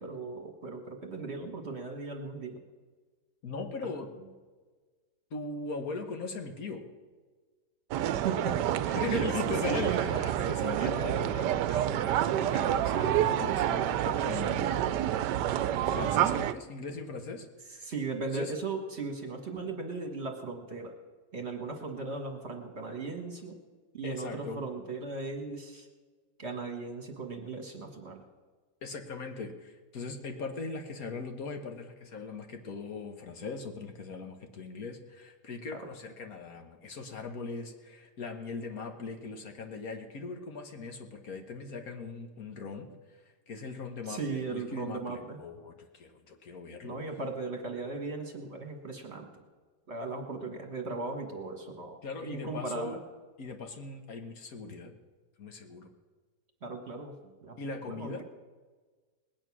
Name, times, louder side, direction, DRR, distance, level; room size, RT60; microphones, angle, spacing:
voice 1, 0.0-2.6 8.2-8.6 9.0-10.2 10.7-11.2 17.8-20.9 21.3-23.6 23.9-25.9 26.4-28.3 35.7-35.8 44.1-45.4 46.8-49.4 49.9-53.0 56.6-57.6 57.9-58.2, right 4 dB, 40° right, 3 dB, 1.7 m, -37 dB
voice 2, 3.4-4.1 5.3-6.8 8.9-15.1 15.9-17.9 18.3-18.5 24.0-24.6 28.8-42.9 43.5-47.0 52.0-53.0 53.4-54.9 55.4-55.9 57.6-58.2, left 4 dB, 60° left, 5 dB, 1.6 m, -39 dB
sound 1, 7.9-16.5, right 11 dB, 85° right, 1.2 m, -28 dB
19.5 x 9.1 x 6.1 m, 1.4 s
omnidirectional pair, 1.8 m